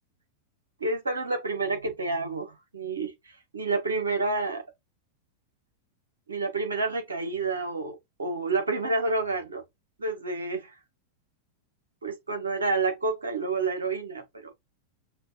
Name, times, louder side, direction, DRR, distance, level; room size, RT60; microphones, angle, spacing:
voice 1, 0.8-3.1 3.5-4.6 6.3-9.6 10.0-10.7 12.0-14.5, right 3 dB, 80° right, 1.2 m, -29 dB
5.9 x 2.5 x 2.4 m
figure-of-eight pair, 90°, 0 cm